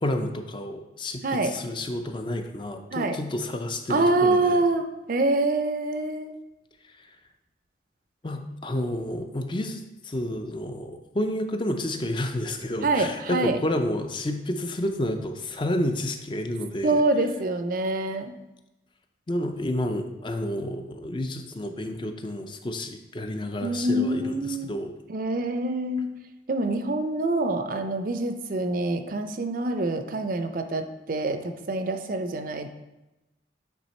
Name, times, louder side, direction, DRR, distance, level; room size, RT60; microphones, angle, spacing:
voice 1, 0.0-4.6 8.2-17.0 19.3-24.9, left 1 dB, 25° left, 6 dB, 0.5 m, -30 dB
voice 2, 1.2-1.5 2.9-3.2 3.9-6.3 12.8-13.6 16.8-18.3 23.6-24.7 25.1-26.1 26.5-32.7, right 2 dB, 50° right, 7 dB, 0.5 m, -26 dB
8.7 x 3.5 x 4.2 m, 1.0 s
head